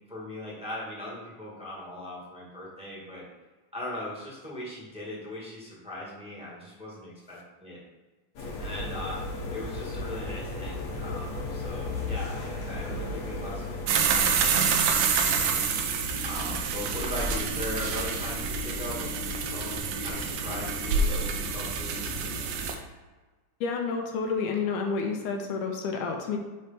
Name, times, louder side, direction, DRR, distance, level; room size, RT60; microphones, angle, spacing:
voice 1, 0.0-3.2 3.7-7.8 8.6-9.2 9.5-15.8 16.2-22.3, left 1 dB, 5° right, -6 dB, 0.7 m, -39 dB
sound 1, 8.4-13.9, left 2 dB, 60° left, 1.8 m, -34 dB
sound 2, 13.9-22.7, right 5 dB, 75° right, 1.6 m, -27 dB
voice 2, 23.6-26.4, left 5 dB, 85° left, 3 dB, 2.4 m, -29 dB
6.4 x 3.3 x 5.6 m, 1.3 s
omnidirectional pair, 3.6 m